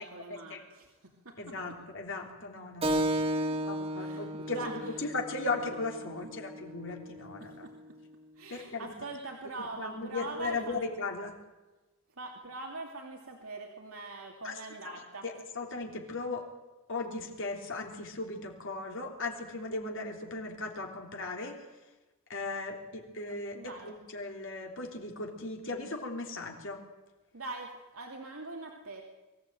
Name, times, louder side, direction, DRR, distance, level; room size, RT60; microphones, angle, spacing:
voice 1, 0.0-1.8 3.1-4.9 6.0-6.3 7.4-7.7 8.4-10.8 12.2-15.2 23.5-23.9 27.3-29.0, right 2 dB, 80° right, 1 dB, 2.7 m, -43 dB
voice 2, 1.4-3.2 3.6-7.6 8.5-8.9 9.6-11.4 14.4-14.5 15.2-16.5 16.9-21.6 22.3-26.8, left 3 dB, 65° left, 2 dB, 3.4 m, -37 dB
Keyboard (musical), 2.8-7.9, right 1 dB, 30° right, 2.2 m, -34 dB
23.0 x 15.5 x 9.1 m, 1.1 s
head